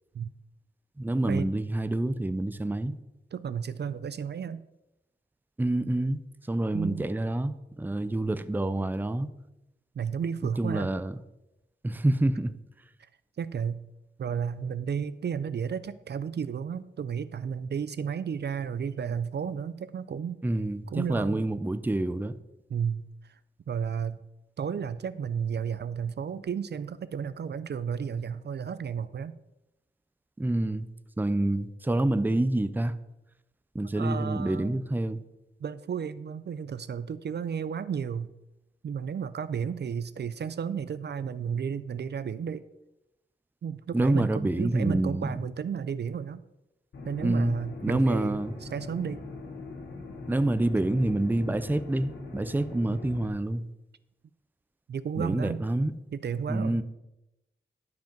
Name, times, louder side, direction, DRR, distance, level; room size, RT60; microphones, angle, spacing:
voice 1, 1.0-2.9 5.6-6.2 6.5-9.3 10.6-11.1 11.8-12.6 20.4-22.3 30.4-30.9 31.2-33.0 33.7-35.2 43.9-45.4 47.2-47.6 47.8-48.5 50.3-53.7 55.2-55.9 56.5-56.8, right 1 dB, 10° right, 12 dB, 0.5 m, -27 dB
voice 2, 3.3-4.6 6.7-7.0 10.0-10.9 13.4-13.8 14.2-20.4 20.9-21.4 22.7-23.3 23.7-24.2 24.6-29.3 34.0-34.8 35.6-38.3 38.8-42.7 43.6-46.4 47.1-49.2 54.9-55.6 56.1-56.8, right 7 dB, 60° right, 14 dB, 0.4 m, -33 dB
sound 1, 46.9-53.3, left 3 dB, 80° left, 1.7 m, -41 dB
11.5 x 5.2 x 5.3 m, 0.92 s
wide cardioid pair, 90°, 19 cm